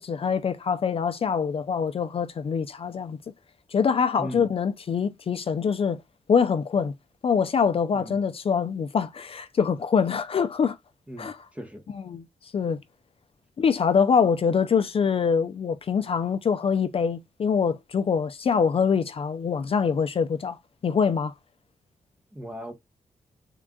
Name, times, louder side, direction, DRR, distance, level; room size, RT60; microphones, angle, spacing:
voice 1, 0.0-3.2 3.7-6.0 6.3-6.9 7.2-10.8 11.2-11.4 11.9-12.2 12.5-12.8 13.6-21.3, left 6 dB, 50° left, 0.5 m, -24 dB
voice 2, 4.2-4.5 7.9-8.2 11.1-11.8 22.3-22.7, equal, 10° right, 0.9 m, -38 dB
3.7 x 2.3 x 3.6 m
cardioid pair, 85°, 12 cm